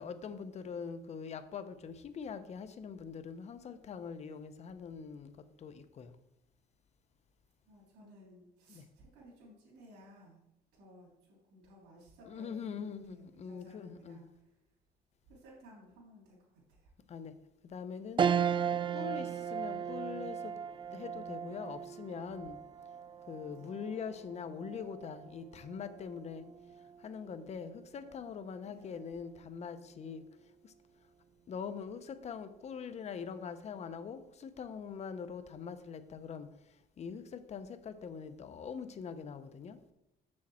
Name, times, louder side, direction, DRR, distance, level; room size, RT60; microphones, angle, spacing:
voice 1, 0.0-5.3 5.6-6.1 8.7-8.9 12.3-14.2 17.1-17.3 17.6-18.3 18.9-20.6 20.9-22.6 23.3-26.5 27.0-30.2 30.6-30.7 31.5-36.5 37.0-39.8, left 6 dB, 40° left, 11 dB, 0.7 m, -43 dB
voice 2, 7.7-10.4 10.7-14.5 15.3-16.9 19.0-19.4 23.5-23.8 28.6-29.0, equal, 85° right, -5 dB, 3.1 m, -57 dB
sound 1, 18.2-27.8 28.3-28.4 29.7-30.1, right 8 dB, 30° right, 0.4 m, -37 dB
7.2 x 6.4 x 4.3 m, 0.86 s
cardioid pair, 110°, 17 cm